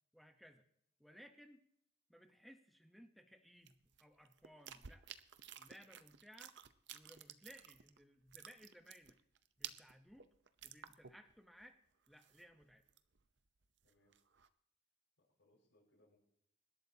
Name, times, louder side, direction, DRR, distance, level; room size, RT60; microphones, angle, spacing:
voice 1, 0.1-0.6 1.0-1.6 2.1-5.0 5.6-6.5 6.9-9.2 9.6-10.3 10.6-11.8 12.1-12.8, equal, ahead, 6 dB, 0.9 m, -61 dB
sound 1, 3.7-8.0 8.3-11.3 11.6-11.7 12.1-13.2 13.6-14.5, right 9 dB, 55° right, 0.7 m, -54 dB
voice 2, 13.8-14.2 15.2-16.2, left 1 dB, 65° left, -8 dB, 5.8 m, -74 dB
25.5 x 12.0 x 2.8 m, 0.70 s
head